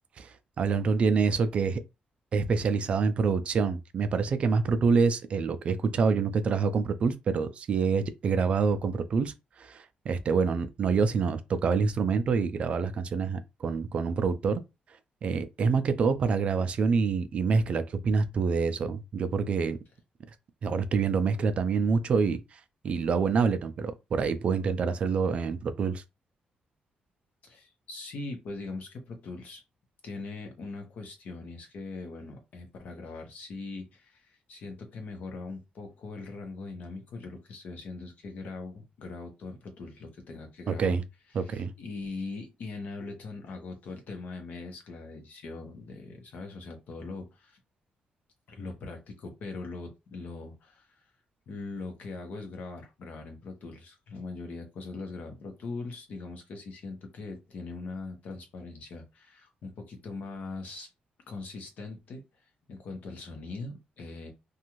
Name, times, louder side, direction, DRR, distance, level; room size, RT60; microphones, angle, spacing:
voice 1, 0.2-1.8 2.3-14.6 15.2-19.8 20.6-26.0 40.7-41.0 41.3-41.7, right 5 dB, 45° right, 0.3 m, -26 dB
voice 2, 27.4-29.6 30.0-41.0 41.4-47.6 48.5-51.0 51.5-60.9 61.3-64.3, left 3 dB, 60° left, 0.9 m, -41 dB
2.6 x 2.3 x 3.0 m
wide cardioid pair, 175°, 3 cm